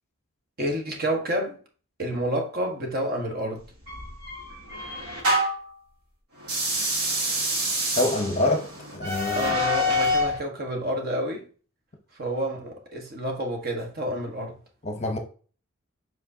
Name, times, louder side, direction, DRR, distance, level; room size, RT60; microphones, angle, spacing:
voice 1, 0.6-1.5 2.0-3.6 9.3-11.4 12.2-14.5, right 1 dB, 45° right, 1.4 m, -29 dB
sound 1, 3.9-5.7 6.4-10.4, equal, 85° right, 3.0 m, -26 dB
voice 2, 8.0-9.6 14.8-15.2, left 2 dB, 30° left, 0.8 m, -26 dB
7.6 x 4.8 x 2.8 m
head